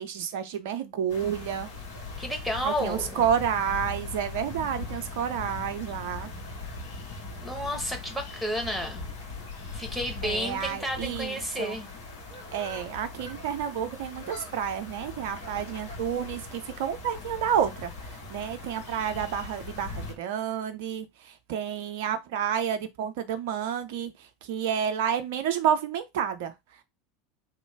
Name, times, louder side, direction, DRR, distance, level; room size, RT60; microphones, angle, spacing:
voice 1, 0.0-1.7 2.6-6.3 10.2-11.8 12.5-26.8, right 8 dB, 55° right, 0.4 m, -30 dB
sound 1, 1.1-20.1, left 3 dB, 60° left, 1.3 m, -40 dB
voice 2, 2.2-3.2 7.4-9.1 9.7-11.9, equal, 5° left, 1.0 m, -31 dB
3.0 x 2.2 x 3.3 m
figure-of-eight pair, 75°, 0 cm